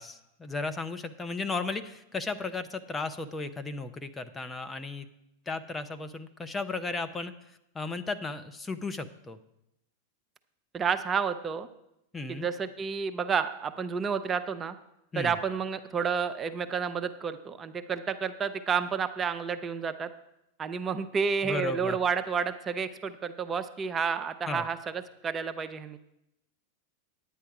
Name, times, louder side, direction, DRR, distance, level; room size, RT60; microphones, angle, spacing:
voice 1, 0.0-5.1 5.5-7.3 7.7-9.4 12.1-12.5 15.1-15.3 21.4-22.0 24.5-24.7, left 3 dB, 15° left, 9 dB, 0.7 m, -35 dB
voice 2, 10.7-11.7 12.3-14.7 15.2-20.1 20.6-24.8 25.2-26.0, right 6 dB, 25° right, 9 dB, 0.6 m, -30 dB
9.8 x 9.2 x 4.8 m, 0.84 s
hypercardioid pair, 100°, 0 cm